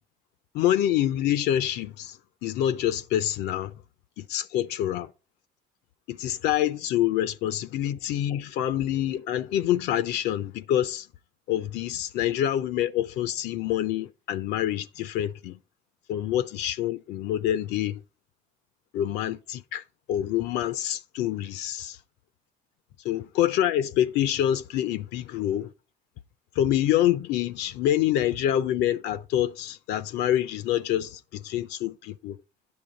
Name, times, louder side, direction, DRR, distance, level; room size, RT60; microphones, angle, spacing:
voice 1, 0.5-3.7 4.2-5.1 6.1-11.1 11.5-15.6 16.1-18.0 18.9-19.8 20.1-22.0 23.0-25.7 26.6-32.4, left 11 dB, 80° left, 0.5 m, -26 dB
8.7 x 6.8 x 3.9 m
cardioid pair, 110°, 17 cm